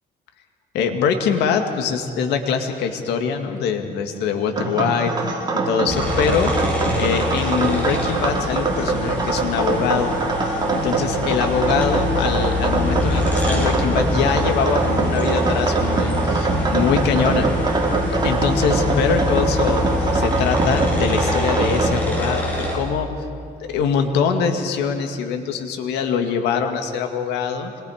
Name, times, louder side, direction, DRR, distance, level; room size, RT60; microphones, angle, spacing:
voice 1, 0.7-5.3 5.7-6.5 7.0-10.1 10.7-17.5 18.2-19.8 20.1-23.1 23.6-27.7, left 6 dB, 85° left, 5 dB, 2.0 m, -23 dB
sound 1, 4.6-21.9, right 3 dB, 25° right, 3.0 m, -23 dB
sound 2, 5.9-22.8, left 1 dB, 10° left, 7.2 m, -25 dB
27.0 x 22.0 x 5.0 m, 2.3 s
cardioid pair, 110°, 17 cm